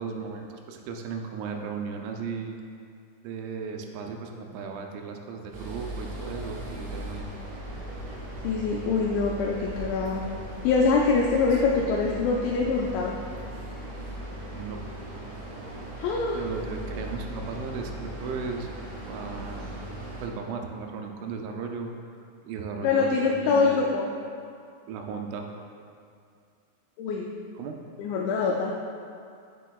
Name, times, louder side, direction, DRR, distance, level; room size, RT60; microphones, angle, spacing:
voice 1, 0.0-2.6 3.2-7.3 11.5-12.4 14.5-14.8 16.3-19.7 20.2-23.8 24.9-25.5 27.6-27.8, right 5 dB, 85° right, 3 dB, 3.0 m, -36 dB
sound 1, 5.5-20.3, right 1 dB, 65° right, 2.9 m, -38 dB
voice 2, 8.4-10.2 10.6-13.1 16.0-16.4 22.8-24.1 27.0-27.3 28.0-28.7, left 4 dB, 85° left, -2 dB, 2.7 m, -24 dB
8.1 x 6.5 x 2.3 m, 2.3 s
omnidirectional pair, 5.5 m